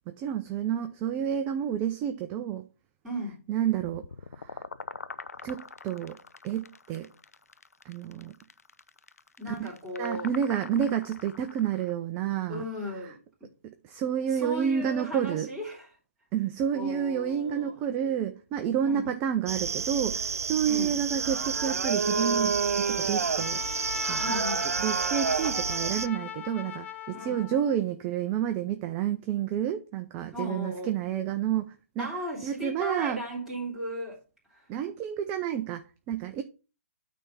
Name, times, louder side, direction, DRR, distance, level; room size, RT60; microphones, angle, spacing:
voice 1, 0.1-2.6 3.5-4.1 4.3-4.6 5.4-6.2 6.4-7.1 7.8-8.3 9.5-9.7 10.0-12.6 13.0-13.1 13.6-15.5 16.3-24.2 24.8-32.1 32.4-33.2 34.7-36.4, right 9 dB, 20° right, 0.5 m, -30 dB
voice 2, 3.0-3.4 9.4-10.3 12.5-13.5 14.3-15.9 16.7-17.8 18.8-19.2 20.6-21.0 24.2-24.6 27.1-27.4 30.3-30.9 32.0-34.2 34.5-34.7, equal, 5° right, 3.3 m, -36 dB
sound 1, 3.8-11.9, left 4 dB, 85° left, 0.5 m, -44 dB
sound 2, 19.5-26.1, right 5 dB, 75° right, 0.5 m, -29 dB
Trumpet, 23.3-27.8, left 8 dB, 50° left, 1.4 m, -38 dB
9.1 x 3.5 x 5.6 m
hypercardioid pair, 140°, 8 cm